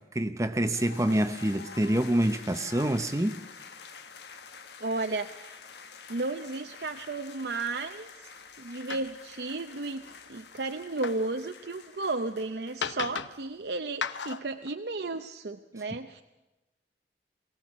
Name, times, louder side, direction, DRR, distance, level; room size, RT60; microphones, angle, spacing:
voice 1, 0.0-3.4, right 1 dB, 15° right, 0.7 m, -26 dB
sound 1, 0.7-13.4, left 5 dB, 70° left, 1.5 m, -48 dB
sound 2, 1.2-1.3 1.5-1.9 2.2-2.5 2.8-3.4 3.7-3.9 4.9-5.1 6.2-6.3 6.8-7.3 7.8-7.9 8.3-8.6 8.8-12.0 12.6-13.5 13.9-14.7, left 6 dB, 90° left, 0.8 m, -39 dB
voice 2, 4.8-5.6 6.1-10.0 10.3-16.2, right 3 dB, 65° right, 0.7 m, -34 dB
22.5 x 16.5 x 7.4 m
head